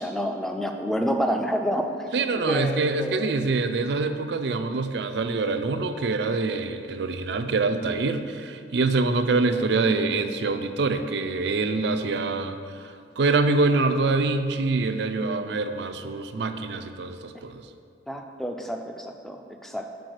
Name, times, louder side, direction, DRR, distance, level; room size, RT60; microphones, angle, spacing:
voice 1, 0.0-3.3 9.5-9.6 18.1-19.9, equal, ahead, 4 dB, 0.4 m, -29 dB
voice 2, 2.1-17.7, right 3 dB, 65° right, 8 dB, 0.4 m, -25 dB
6.1 x 4.6 x 6.4 m, 2.3 s
head